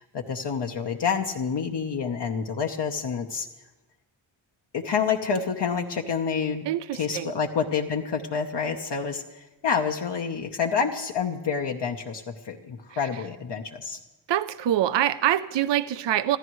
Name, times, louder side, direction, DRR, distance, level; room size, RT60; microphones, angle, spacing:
voice 1, 0.0-3.5 4.7-6.7 6.9-14.0, left 6 dB, 60° left, 2 dB, 1.0 m, -28 dB
voice 2, 6.7-7.3 14.3-16.4, right 12 dB, 65° right, 12 dB, 0.6 m, -25 dB
26.5 x 14.0 x 3.2 m, 1.1 s
wide cardioid pair, 105°, 47 cm